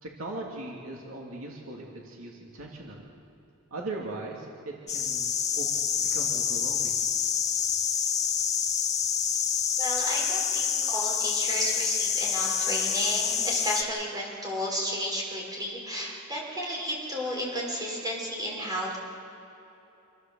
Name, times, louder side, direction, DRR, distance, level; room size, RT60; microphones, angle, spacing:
voice 1, 0.0-3.1 3.7-5.7 6.0-7.0, right 2 dB, 70° right, -2 dB, 2.8 m, -39 dB
sound 1, 4.9-13.8, left 7 dB, 35° left, 1.6 m, -27 dB
voice 2, 9.8-19.0, equal, 20° right, -3 dB, 5.5 m, -32 dB
27.5 x 15.0 x 7.7 m, 3.0 s
head